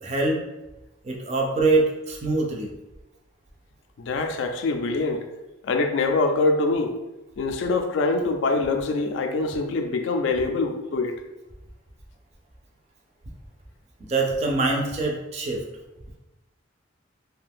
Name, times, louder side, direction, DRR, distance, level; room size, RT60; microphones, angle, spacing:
voice 1, 0.0-0.4 1.0-2.7 14.0-15.6, right 3 dB, 30° right, 0 dB, 0.4 m, -24 dB
voice 2, 4.0-5.3 5.6-7.0 7.4-11.2, left 3 dB, 65° left, 5 dB, 0.3 m, -24 dB
2.5 x 2.2 x 3.4 m, 1.0 s
head